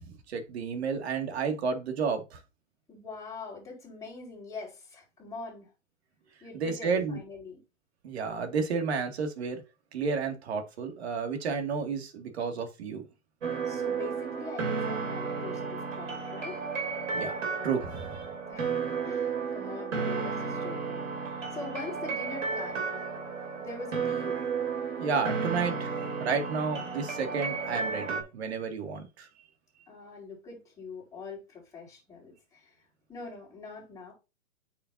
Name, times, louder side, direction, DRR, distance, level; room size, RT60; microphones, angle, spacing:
voice 1, 0.0-2.4 6.5-7.2 8.0-9.6 9.9-13.0 17.1-17.4 17.6-18.3 25.0-29.3, right 5 dB, 50° right, 2.2 m, -31 dB
voice 2, 2.9-5.7 6.4-7.6 13.6-16.7 18.5-18.7 19.0-21.2 21.5-22.9 23.6-24.4 29.9-32.8 33.1-34.1, left 3 dB, 10° left, 4.3 m, -43 dB
sound 1, 13.4-28.2, right 5 dB, 70° right, 3.1 m, -33 dB
8.8 x 5.8 x 2.7 m
hypercardioid pair, 140°, 40 cm